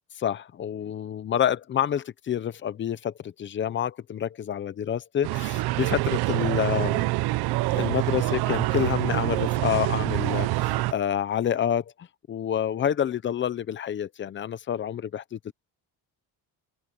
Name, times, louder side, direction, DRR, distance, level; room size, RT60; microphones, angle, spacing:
voice 1, 0.2-7.1 7.7-11.9 12.3-15.5, left 9 dB, 30° left, 0.8 m, -28 dB
sound 1, 5.2-10.9, right 19 dB, 85° right, 0.9 m, -26 dB
cardioid pair, 160°, 37 cm